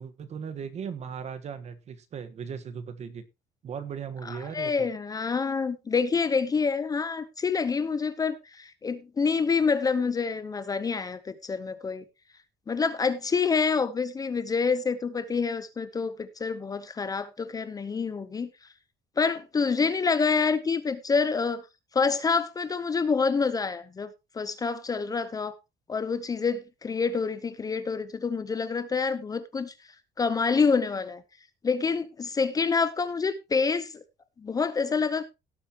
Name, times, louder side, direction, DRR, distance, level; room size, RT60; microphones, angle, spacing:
voice 1, 0.0-3.2 3.6-4.9, right 7 dB, 40° right, 1.4 m, -37 dB
voice 2, 4.2-12.0 12.7-18.5 19.2-21.6 21.9-24.1 24.3-25.5 25.9-29.7 30.2-31.2 31.6-34.0 34.4-35.2, left 5 dB, 20° left, 0.8 m, -27 dB
17.5 x 8.0 x 2.9 m
cardioid pair, 175°, 18 cm